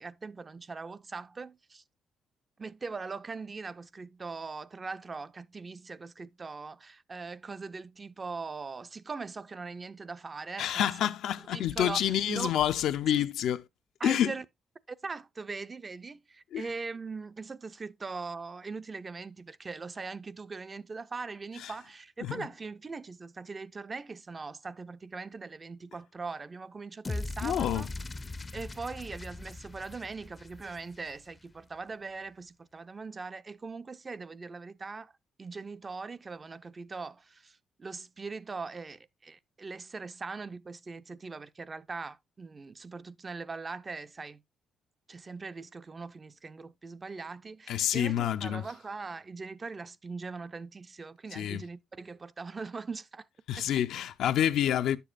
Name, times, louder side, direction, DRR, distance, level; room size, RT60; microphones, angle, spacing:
voice 1, 0.0-1.8 2.6-11.1 11.5-12.0 12.3-12.5 13.1-13.3 14.0-14.4 14.9-27.9 28.5-35.1 35.4-44.4 45.1-53.3 53.6-53.7, right 4 dB, 30° right, 0.4 m, -41 dB
voice 2, 10.6-13.6 14.0-14.3 16.5-16.7 21.6-21.7 22.2-22.5 27.4-27.9 47.7-48.7 51.3-51.7 53.5-55.0, left 11 dB, 80° left, 0.4 m, -28 dB
sound 1, 27.0-31.3, left 2 dB, 25° left, 0.4 m, -40 dB
9.7 x 6.8 x 2.4 m
cardioid pair, 90°, 0 cm